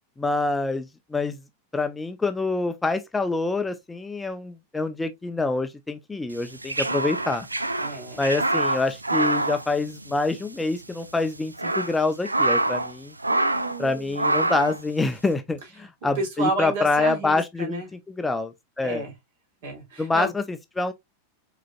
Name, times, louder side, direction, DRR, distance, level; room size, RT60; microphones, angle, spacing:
voice 1, 0.2-1.4 1.7-7.5 8.2-13.1 13.8-19.0 20.0-20.9, left 3 dB, 10° left, 0.4 m, -26 dB
sound 1, 6.4-10.5 10.7-10.8 11.4-12.9 13.2-13.8 14.2-14.8, right 2 dB, 85° right, 0.4 m, -25 dB
voice 2, 7.8-8.2 13.3-14.1 16.2-17.9 18.8-19.1 19.6-20.3, right 2 dB, 55° right, 2.8 m, -31 dB
4.9 x 4.0 x 2.3 m
figure-of-eight pair, 90°, 0 cm